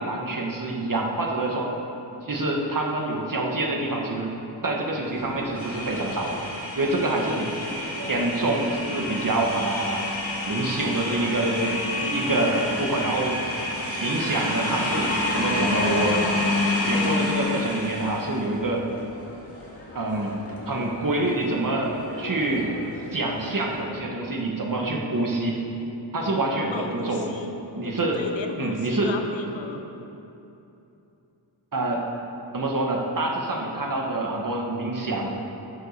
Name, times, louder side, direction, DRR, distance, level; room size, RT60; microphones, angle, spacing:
voice 1, 0.0-1.7 2.2-4.3 4.6-6.4 6.8-7.5 8.0-10.0 10.5-13.4 14.0-16.2 16.8-18.8 20.0-20.4 20.7-22.7 23.1-25.6 26.1-27.3 27.7-28.2 28.6-29.1 31.7-32.0 32.5-35.3, right 2 dB, 45° right, 0 dB, 1.6 m, -26 dB
sound 1, 5.1-18.6 18.9-23.8, left 2 dB, 30° left, 2.2 m, -29 dB
voice 2, 26.7-27.5 27.8-29.8, left 5 dB, 90° left, 5 dB, 1.0 m, -35 dB
11.0 x 6.5 x 6.7 m, 2.9 s
wide cardioid pair, 80°, 44 cm